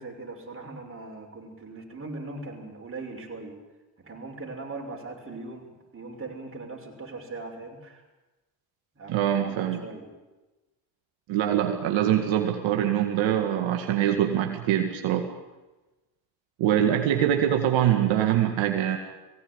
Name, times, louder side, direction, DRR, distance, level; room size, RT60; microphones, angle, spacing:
voice 1, 0.0-3.6 4.0-8.0 9.0-10.1, right 3 dB, 25° right, 1 dB, 6.4 m, -40 dB
voice 2, 9.1-9.8 11.3-15.3 16.6-19.0, right 10 dB, 70° right, 4 dB, 2.1 m, -24 dB
20.0 x 17.0 x 9.8 m, 1.1 s
supercardioid pair, 70°, 47 cm